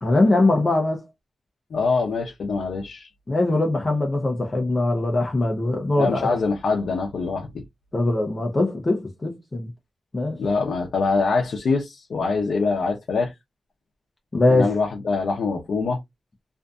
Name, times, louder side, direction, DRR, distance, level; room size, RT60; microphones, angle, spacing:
voice 1, 0.0-1.0 3.3-6.3 7.9-9.7 10.1-10.4 14.3-14.7, left 2 dB, 25° left, 0.6 m, -21 dB
voice 2, 1.7-3.1 6.0-7.5 10.4-13.3 14.5-16.0, left 4 dB, 75° left, 0.6 m, -24 dB
2.5 x 2.5 x 2.3 m
wide cardioid pair, 135°, 0 cm